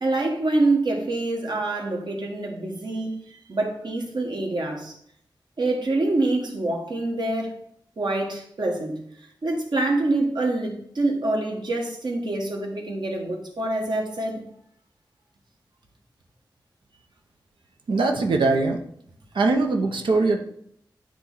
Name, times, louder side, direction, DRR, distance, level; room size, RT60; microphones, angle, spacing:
voice 1, 0.0-4.9 5.6-7.6 8.0-9.0 9.4-14.4, right 2 dB, 65° right, 1.5 m, -26 dB
voice 2, 17.9-18.8 19.3-20.4, right 3 dB, 85° right, 0.8 m, -21 dB
9.3 x 3.2 x 4.0 m
cardioid pair, 60°, 8 cm